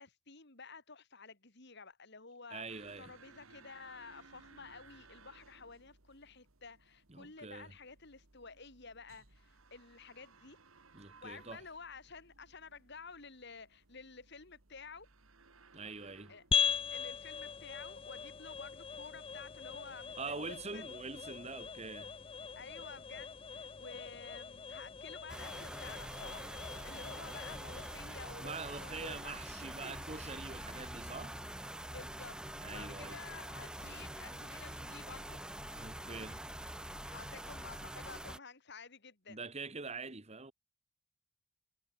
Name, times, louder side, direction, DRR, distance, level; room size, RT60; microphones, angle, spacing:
voice 1, 0.0-10.6 11.2-15.1 16.3-16.4 16.9-20.9 22.6-26.6 26.8-29.9 31.8-32.4 32.6-35.4 37.0-39.4, left 4 dB, 55° left, 2.9 m, -52 dB
voice 2, 2.5-3.1 7.1-7.7 10.9-11.6 15.7-16.3 20.2-22.1 28.4-31.4 32.6-33.2 35.7-36.4 39.3-40.5, right 4 dB, 30° right, 1.7 m, -44 dB
sound 1, 2.7-17.1, right 4 dB, 80° right, 2.6 m, -62 dB
sound 2, 16.5-31.1, left 7 dB, 25° left, 0.5 m, -41 dB
sound 3, 25.3-38.4, right 1 dB, 5° right, 1.1 m, -45 dB
head